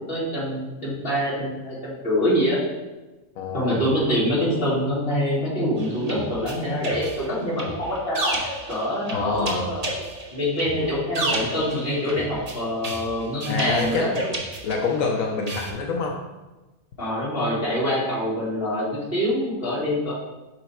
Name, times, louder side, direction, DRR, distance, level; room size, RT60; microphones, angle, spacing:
voice 1, 0.1-2.6 3.5-8.4 8.7-9.8 10.3-14.1 17.0-20.1, equal, 45° left, -7 dB, 2.2 m, -25 dB
voice 2, 3.4-3.8 9.1-9.7 13.5-14.1 14.6-16.2, left 4 dB, 85° left, 1 dB, 1.1 m, -26 dB
sound 1, 5.8-15.1 15.5-15.7, right 1 dB, 30° right, 0.9 m, -32 dB
5.5 x 4.5 x 4.1 m, 1.1 s
omnidirectional pair, 1.4 m